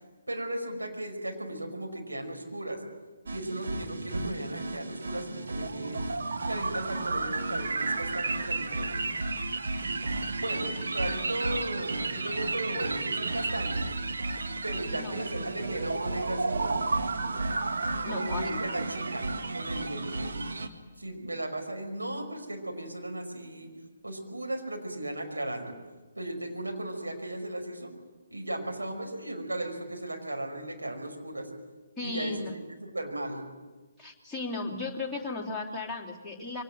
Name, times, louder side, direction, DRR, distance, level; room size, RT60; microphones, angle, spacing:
voice 1, 0.3-2.8 3.3-6.0 6.5-8.9 10.4-13.8 14.6-16.8 18.1-20.3 21.0-23.7 24.0-25.7 26.2-27.9 28.3-31.5 32.0-33.4, right 1 dB, 80° right, 3 dB, 5.5 m, -36 dB
sound 1, 3.3-20.7, right 3 dB, 60° right, 1.9 m, -32 dB
voice 2, 14.9-15.2 18.0-18.4 32.0-32.5 34.0-36.6, left 3 dB, ahead, -2 dB, 3.0 m, -35 dB
23.5 x 18.5 x 9.0 m, 1.2 s
figure-of-eight pair, 135°, 0 cm